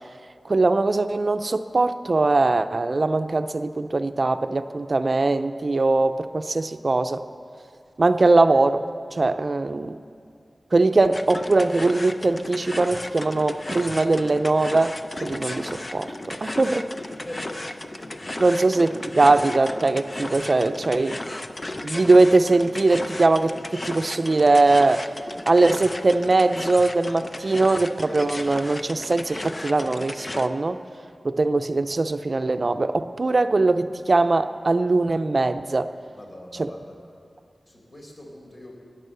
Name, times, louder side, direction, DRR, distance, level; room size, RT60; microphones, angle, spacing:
voice 1, 0.4-7.2 8.0-10.0 10.7-15.0 15.2-16.9 18.4-21.2 21.8-25.0 25.5-30.8 31.2-35.9, right 3 dB, 55° right, 10 dB, 0.5 m, -21 dB
sound 1, 11.1-30.5, left 1 dB, 35° left, 0.7 m, -35 dB
voice 2, 17.2-17.7 36.1-37.0 37.6-38.7, left 1 dB, 55° left, -2 dB, 4.4 m, -41 dB
20.5 x 9.1 x 6.8 m, 2.3 s
wide cardioid pair, 60°, 0 cm